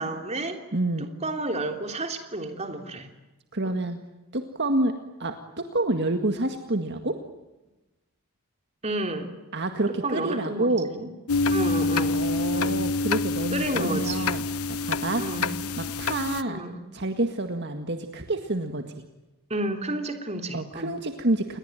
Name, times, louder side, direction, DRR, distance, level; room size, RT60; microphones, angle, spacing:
voice 1, 0.0-0.6 1.0-3.1 3.6-3.8 8.8-9.3 10.0-11.1 11.5-12.2 12.5-12.8 13.5-14.3 15.2-15.5 16.5-16.7 19.5-20.9, right 2 dB, 30° right, 6 dB, 3.3 m, -31 dB
voice 2, 0.7-1.1 3.5-4.0 4.3-4.9 5.2-7.2 9.5-10.9 12.1-14.4 14.7-15.3 15.8-16.6 16.9-19.0 20.5-21.6, right 2 dB, 50° right, 6 dB, 2.0 m, -28 dB
sound 1, 11.3-16.4, left 3 dB, 80° left, 1.1 m, -26 dB
29.5 x 21.5 x 9.2 m, 1.1 s
head